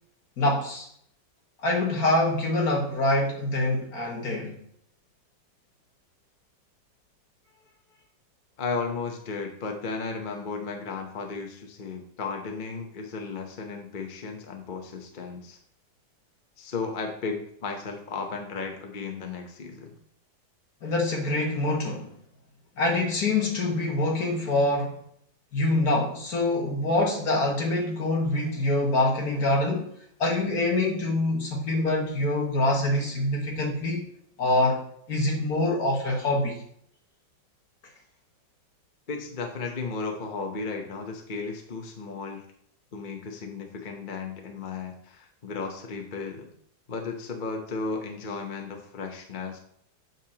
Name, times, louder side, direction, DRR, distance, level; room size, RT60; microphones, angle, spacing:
voice 1, 0.4-0.9 1.6-4.6 20.8-22.1 22.8-25.0 25.5-29.9 30.2-34.0 34.4-34.8 35.1-36.6, left 2 dB, 55° left, -1 dB, 1.9 m, -25 dB
voice 2, 8.6-15.6 16.6-19.9 39.1-42.4 42.9-46.5 46.9-49.6, left 4 dB, 40° left, 3 dB, 0.7 m, -34 dB
7.5 x 6.7 x 2.9 m, 0.67 s
omnidirectional pair, 2.0 m